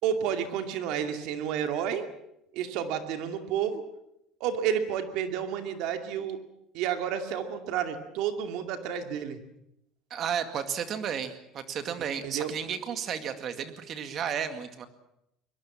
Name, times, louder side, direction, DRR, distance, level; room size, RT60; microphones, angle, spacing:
voice 1, 0.0-2.0 2.5-3.8 4.4-6.4 6.7-9.4 12.2-12.5, right 8 dB, 60° right, 7 dB, 2.5 m, -30 dB
voice 2, 10.1-14.9, right 8 dB, 35° right, 9 dB, 2.1 m, -33 dB
23.0 x 21.5 x 7.4 m, 0.81 s
cardioid pair, 170°, 0 cm